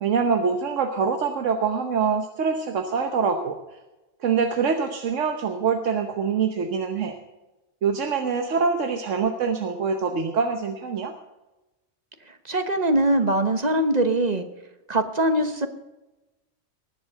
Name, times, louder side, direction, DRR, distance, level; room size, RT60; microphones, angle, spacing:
voice 1, 0.0-3.6 4.2-7.2 7.8-11.1, right 5 dB, 80° right, 6 dB, 1.3 m, -24 dB
voice 2, 12.4-14.4 14.9-15.7, right 1 dB, 35° right, 8 dB, 1.1 m, -22 dB
19.5 x 7.5 x 6.8 m, 1.0 s
omnidirectional pair, 1.3 m